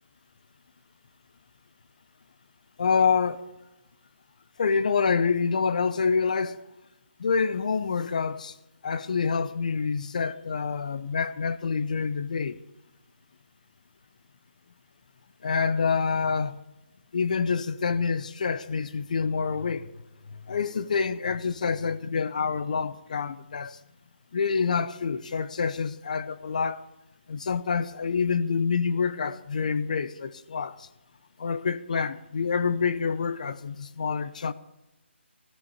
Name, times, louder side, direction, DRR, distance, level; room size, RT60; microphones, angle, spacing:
voice 1, 2.8-3.4 4.6-6.6 7.2-8.5 8.8-12.6 15.4-16.6 17.1-19.9 20.3-23.8 24.3-26.8 27.3-30.9 31.4-34.5, left 5 dB, 40° left, 0.7 m, -27 dB
15.0 x 10.0 x 7.0 m
hypercardioid pair, 170°, 7 cm